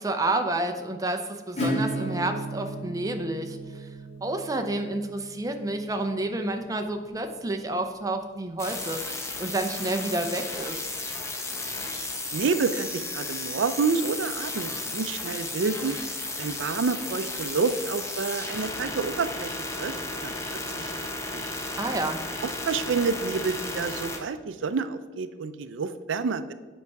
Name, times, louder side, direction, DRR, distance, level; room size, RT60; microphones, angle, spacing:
voice 1, 0.0-3.6 4.2-9.0 9.4-10.8 21.8-22.2, right 2 dB, 20° right, 5 dB, 0.7 m, -29 dB
Acoustic guitar / Strum, 1.6-7.1, right 1 dB, 35° left, 2.7 m, -34 dB
sound 1, 8.6-24.2, left 2 dB, 15° left, 0.9 m, -34 dB
voice 2, 12.3-16.0 16.4-20.9 21.3-21.5 22.4-26.5, right 4 dB, 85° right, 12 dB, 0.4 m, -29 dB
8.2 x 5.4 x 4.7 m, 1.3 s
head